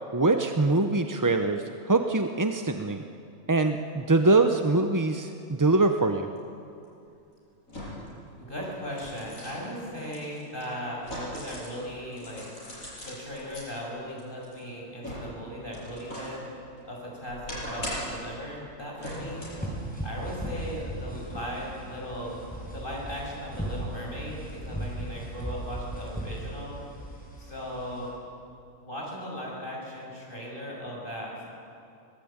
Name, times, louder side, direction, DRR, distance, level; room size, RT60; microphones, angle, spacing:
voice 1, 0.1-3.0 3.5-6.3, right 3 dB, 20° right, 6 dB, 0.6 m, -23 dB
sound 1, 6.4-6.5 7.7-8.2 8.6-11.8 12.1-13.7 14.2-16.4 16.8-18.3 19.0-19.7 20.1-20.2, equal, 90° left, 8.1 m, -39 dB
voice 2, 8.4-12.5 13.0-16.5 16.8-19.4 20.0-22.4 22.7-26.8 27.4-28.1 28.8-31.4, equal, 40° left, -3 dB, 6.7 m, -37 dB
sound 2, 19.3-28.1, right 1 dB, 5° left, 6.2 m, -37 dB
25.5 x 18.5 x 8.8 m, 2.6 s
omnidirectional pair, 1.4 m